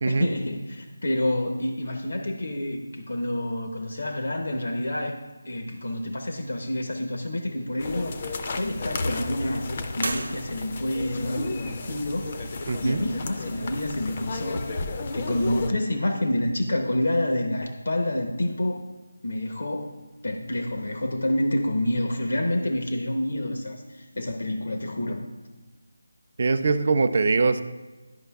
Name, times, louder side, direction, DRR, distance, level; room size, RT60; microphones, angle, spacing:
voice 1, 0.0-5.2 5.4-8.2 8.5-9.7 10.0-12.5 12.8-14.7 15.1-18.9 19.2-19.9 20.2-25.2, left 1 dB, 70° left, 3 dB, 0.7 m, -28 dB
sound 1, 5.7-14.1, right 2 dB, 85° right, 0.8 m, -43 dB
sound 2, 7.8-15.7, left 3 dB, 30° left, 0.4 m, -33 dB
voice 2, 12.7-13.0 26.4-27.6, right 4 dB, 40° right, 10 dB, 0.4 m, -22 dB
11.0 x 5.0 x 2.3 m, 1.2 s
figure-of-eight pair, 170°, 0 cm